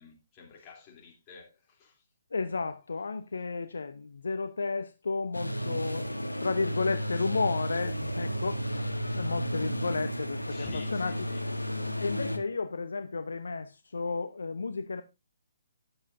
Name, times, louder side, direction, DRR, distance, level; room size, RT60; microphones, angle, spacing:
voice 1, 0.0-2.0 5.7-6.0 10.5-12.0, left 5 dB, 25° left, 3.1 m, -50 dB
voice 2, 2.3-11.1 12.0-15.0, left 4 dB, 65° left, 0.8 m, -33 dB
sound 1, 5.3-12.4, equal, 85° left, 1.3 m, -33 dB
12.5 x 10.0 x 2.6 m
figure-of-eight pair, 130°, 0 cm